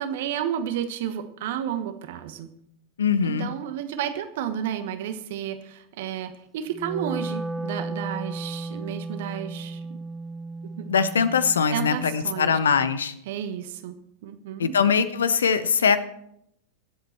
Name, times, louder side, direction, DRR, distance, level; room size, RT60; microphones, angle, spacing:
voice 1, 0.0-2.5 3.2-10.0 10.6-10.9 11.7-12.6 13.3-14.0 14.2-14.7, right 9 dB, 55° right, 10 dB, 1.2 m, -32 dB
voice 2, 3.0-3.5 10.9-13.1 14.6-16.0, left 6 dB, 70° left, 14 dB, 0.9 m, -22 dB
Wind instrument woodwind instrument, 6.7-12.9, right 3 dB, 10° right, 0.9 m, -35 dB
22.0 x 8.0 x 4.5 m, 0.78 s
figure-of-eight pair, 90°, 0 cm